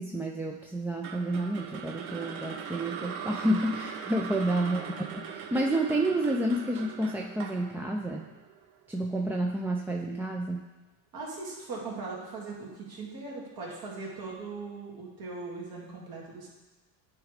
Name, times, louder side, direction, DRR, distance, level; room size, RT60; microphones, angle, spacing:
voice 1, 0.0-8.3 8.9-10.7, right 1 dB, 5° right, 0 dB, 0.4 m, -30 dB
sound 1, 1.0-9.2, right 7 dB, 80° right, 0.8 m, -40 dB
voice 2, 4.6-5.2 11.1-16.5, right 3 dB, 60° right, -3 dB, 2.5 m, -40 dB
9.7 x 3.6 x 5.0 m, 1.2 s
supercardioid pair, 110°, 40 cm